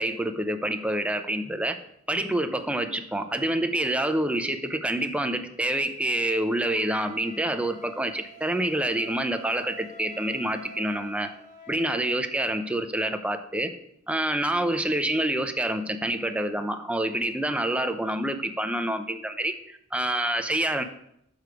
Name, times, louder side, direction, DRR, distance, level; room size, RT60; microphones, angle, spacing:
voice 1, 0.0-1.8 2.1-11.3 11.7-13.7 14.1-20.8, right 1 dB, 5° right, 8 dB, 0.6 m, -27 dB
Wind instrument woodwind instrument, 6.7-12.2, right 2 dB, 40° left, 3.7 m, -46 dB
6.8 x 6.4 x 4.7 m, 0.73 s
head